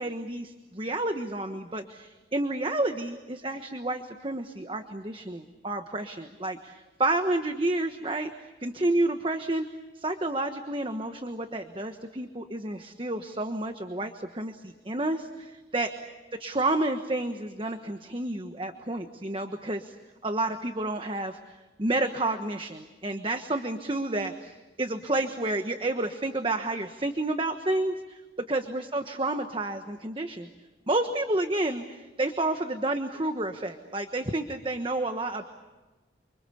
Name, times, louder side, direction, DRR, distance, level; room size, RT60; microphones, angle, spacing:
voice 1, 0.0-8.3 8.6-9.7 9.9-15.9 16.4-19.9 20.2-28.2 28.5-30.5 30.9-35.4, right 2 dB, 30° right, 6 dB, 1.3 m, -30 dB
29.5 x 25.0 x 7.0 m, 1.2 s
head